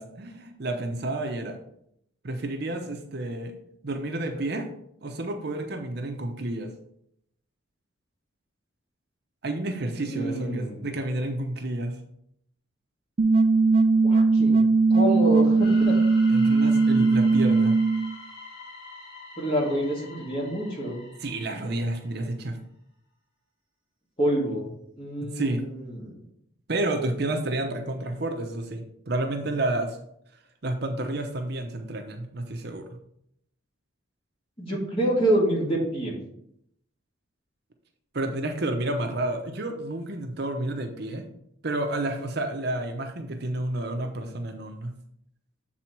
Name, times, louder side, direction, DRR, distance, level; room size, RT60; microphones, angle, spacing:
voice 1, 0.0-1.6 2.2-3.6 3.8-4.7 5.0-6.7 9.4-12.0 16.3-17.7 21.2-22.6 25.2-25.6 26.7-30.0 30.6-32.9 38.1-41.2 41.6-44.9, right 2 dB, 55° right, 5 dB, 0.7 m, -30 dB
voice 2, 10.0-10.9 14.0-16.0 19.4-21.0 24.2-24.7 25.0-26.2 34.6-36.2, right 1 dB, 30° left, -3 dB, 2.0 m, -27 dB
sound 1, 13.2-18.1, right 3 dB, 30° right, 0.3 m, -19 dB
sound 2, 15.6-22.2, left 3 dB, 55° left, 2.3 m, -45 dB
7.4 x 4.1 x 4.5 m, 0.74 s
head